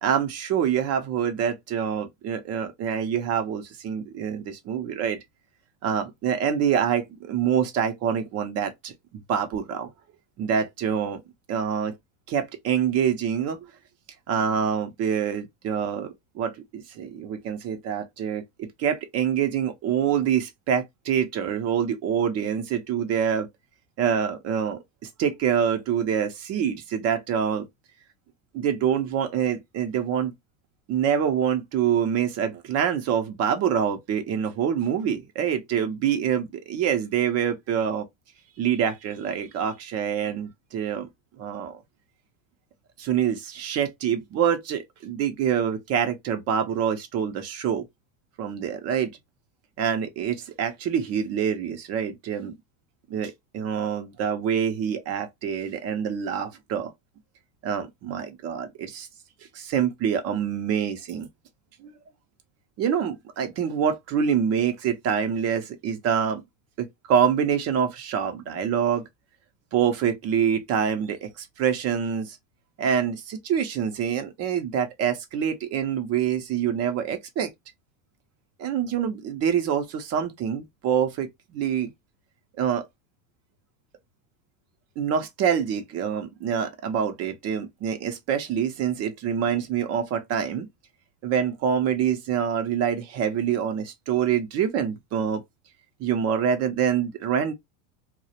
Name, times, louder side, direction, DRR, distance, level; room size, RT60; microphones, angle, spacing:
voice 1, 0.0-5.2 5.8-9.9 10.4-11.2 11.5-11.9 12.3-13.6 14.3-23.5 24.0-24.8 25.2-27.7 28.5-30.3 30.9-38.1 38.6-41.1 41.4-41.8 43.0-47.8 48.4-49.1 49.8-52.5 53.1-56.9 57.6-59.1 59.5-61.3 61.8-61.9 62.8-66.4 66.8-69.0 69.7-72.4 72.8-77.5 78.6-81.9 82.6-82.9 85.0-90.7 91.2-95.4 96.0-97.5, right 8 dB, 35° right, 0.5 m, -26 dB
2.3 x 2.0 x 2.7 m
supercardioid pair, 115°, 49 cm